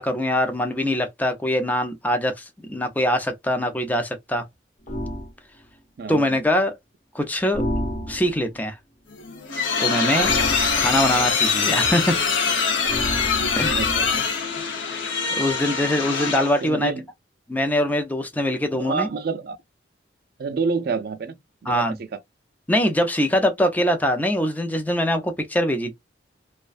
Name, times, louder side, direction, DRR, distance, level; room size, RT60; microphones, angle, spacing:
voice 1, 0.0-4.4 6.1-6.8 7.1-7.6 8.1-8.8 9.8-10.3 10.8-12.2 13.6-13.8 14.9-15.0 15.4-16.9 17.5-19.1 21.7-21.9 22.7-25.9, left 1 dB, 10° left, 0.4 m, -23 dB
sound 1, 4.9-5.3 7.5-8.5 10.2-11.3 12.9-14.2, equal, 45° left, 0.9 m, -30 dB
sound 2, 9.1-16.7, left 5 dB, 85° left, 0.7 m, -23 dB
voice 2, 13.6-14.3 16.6-17.0 18.7-19.6 20.4-21.4 21.6-21.8, right 4 dB, 55° right, 0.4 m, -28 dB
2.4 x 2.1 x 2.4 m
head